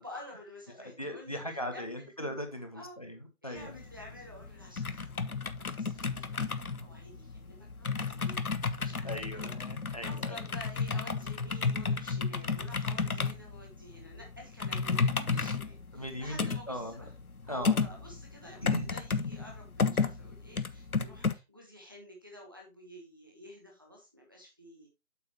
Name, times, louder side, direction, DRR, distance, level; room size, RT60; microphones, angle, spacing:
voice 1, 0.0-2.1 2.7-3.0 3.4-5.5 5.8-8.4 8.8-9.5 10.0-17.1 17.4-24.9, left 1 dB, 15° right, -1 dB, 1.2 m, -50 dB
voice 2, 1.0-3.7 9.0-10.3 15.9-17.0 17.5-17.8 18.6-18.9, equal, 25° left, 5 dB, 1.0 m, -39 dB
sound 1, 3.6-21.3, left 4 dB, 75° left, 1.1 m, -33 dB
8.7 x 6.7 x 3.0 m, 0.25 s
figure-of-eight pair, 170°, 43 cm